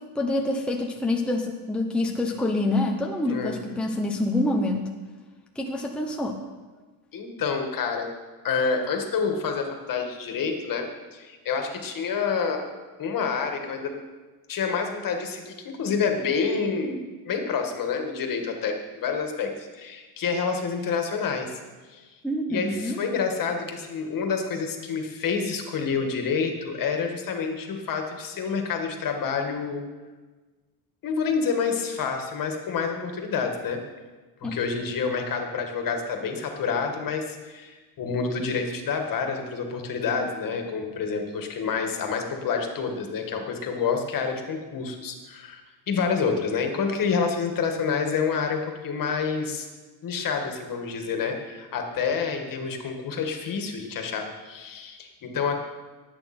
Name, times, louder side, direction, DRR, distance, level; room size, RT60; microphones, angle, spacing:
voice 1, 0.0-4.9 5.5-6.4 22.2-23.0 34.4-34.6, left 2 dB, ahead, 1 dB, 0.9 m, -26 dB
voice 2, 7.1-8.1 8.4-12.6 13.0-13.9 14.5-17.0 17.3-21.6 21.9-22.2 22.5-29.8 31.0-33.8 34.4-45.6 45.9-49.7 50.0-55.6, left 5 dB, 45° left, 4 dB, 2.0 m, -28 dB
18.0 x 8.8 x 4.5 m, 1.3 s
cardioid pair, 135°, 44 cm